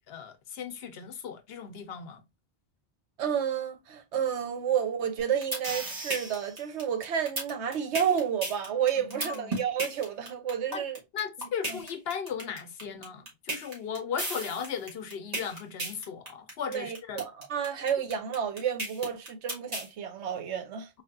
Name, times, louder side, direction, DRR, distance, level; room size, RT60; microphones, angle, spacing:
voice 1, 0.1-2.2 9.0-9.6 10.7-10.9 11.1-17.2, left 7 dB, 65° left, 0.9 m, -37 dB
voice 2, 3.2-11.0 11.7-11.8 16.7-20.9, right 8 dB, 85° right, 1.1 m, -30 dB
sound 1, 5.2-19.9, right 1 dB, 35° right, 1.8 m, -34 dB
4.1 x 3.1 x 2.5 m
omnidirectional pair, 1.1 m